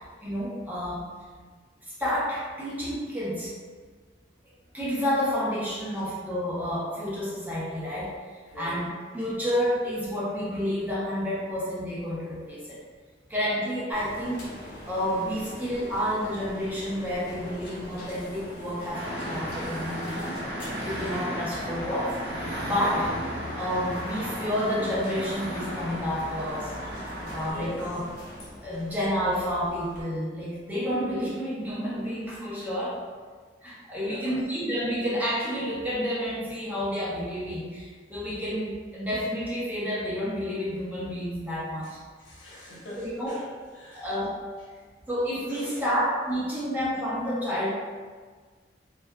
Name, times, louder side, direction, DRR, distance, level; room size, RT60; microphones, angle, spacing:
voice 1, 0.2-1.1 2.0-3.5 4.7-8.1 8.6-12.8 13.3-14.4 14.9-20.4 20.8-22.2 22.6-23.1 23.6-26.7 27.3-28.0 28.6-33.0 33.6-41.9 43.0-43.4 43.9-44.4 45.1-47.7, equal, 10° right, -7 dB, 0.5 m, -30 dB
voice 2, 8.5-8.9 27.1-27.9 28.7-28.9 33.9-34.4 41.8-41.9 42.2-44.1 45.5-45.9, left 1 dB, 85° left, -6 dB, 0.8 m, -43 dB
sound 1, 13.9-30.0, left 1 dB, 60° left, 0.7 m, -42 dB
sound 2, 18.9-27.5, equal, 65° right, 0.6 m, -34 dB
2.7 x 2.2 x 2.2 m, 1.5 s
head